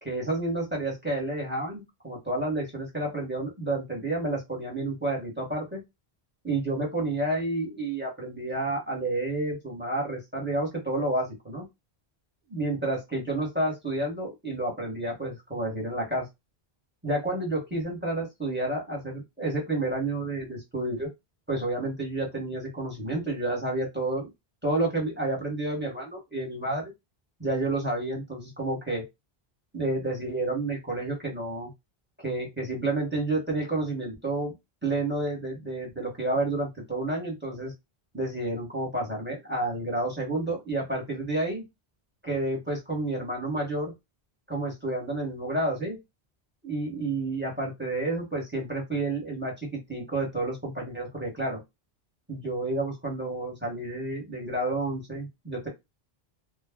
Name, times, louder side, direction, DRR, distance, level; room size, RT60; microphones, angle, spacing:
voice 1, 0.0-5.8 6.4-11.6 12.5-16.3 17.0-21.1 21.5-24.3 24.6-26.9 27.4-29.0 29.7-31.7 32.2-34.5 34.8-37.7 38.1-41.7 42.2-43.9 44.5-46.0 46.6-51.6 52.3-55.7, right 2 dB, 10° right, -2 dB, 1.1 m, -30 dB
2.2 x 2.1 x 3.5 m, 0.21 s
omnidirectional pair, 1.1 m